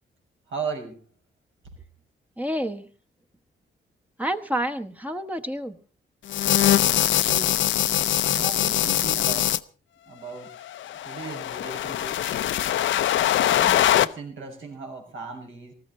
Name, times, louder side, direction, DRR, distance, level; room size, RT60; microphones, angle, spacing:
voice 1, 0.5-1.0 7.2-7.6 8.2-9.5 10.0-10.5 10.9-12.4 13.5-15.7, right 5 dB, 85° right, 3 dB, 6.5 m, -37 dB
voice 2, 2.4-2.9 4.2-5.8, right 1 dB, 10° right, 4 dB, 1.1 m, -29 dB
sound 1, 6.3-9.6 10.7-14.1, left 12 dB, 80° left, 0.7 m, -22 dB
19.5 x 15.0 x 4.1 m, 0.38 s
cardioid pair, 120°, 19 cm